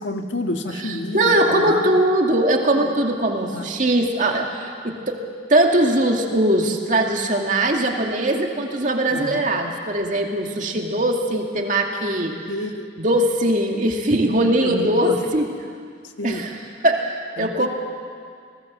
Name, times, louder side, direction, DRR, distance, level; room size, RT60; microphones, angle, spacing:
voice 1, 0.0-1.9 2.8-2.9 3.5-3.7 9.1-9.4 12.5-12.9 14.6-15.2 16.2-16.4 17.4-17.7, left 1 dB, 85° left, 5 dB, 1.6 m, -29 dB
voice 2, 0.8-5.2 5.5-12.3 13.0-15.5 16.2-16.6 16.8-17.7, right 1 dB, 45° right, 2 dB, 2.4 m, -21 dB
28.5 x 19.5 x 7.5 m, 2.2 s
head